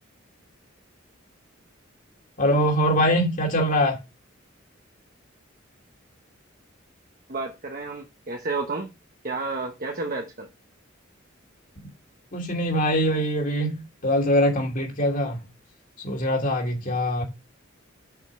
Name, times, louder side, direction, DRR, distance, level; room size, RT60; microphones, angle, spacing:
voice 1, 2.4-4.0 12.3-15.4 16.0-17.2, equal, 40° left, 2.7 m, -23 dB
voice 2, 7.3-8.9 9.2-10.5, right 3 dB, 45° right, 1.2 m, -31 dB
7.1 x 5.3 x 6.5 m
head